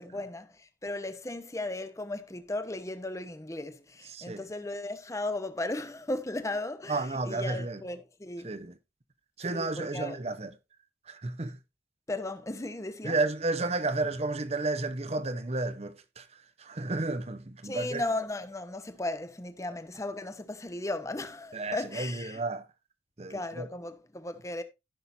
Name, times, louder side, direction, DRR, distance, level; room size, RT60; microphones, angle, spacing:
voice 1, 0.0-8.5 9.5-10.2 12.1-13.2 17.6-22.4 23.3-24.6, left 2 dB, 20° left, 0.8 m, -36 dB
voice 2, 4.1-4.4 6.9-7.8 8.4-8.7 9.4-10.5 11.1-11.6 13.0-16.3 16.6-18.0 21.5-22.7 23.2-23.7, right 2 dB, 35° right, 0.8 m, -32 dB
15.0 x 5.7 x 2.6 m
head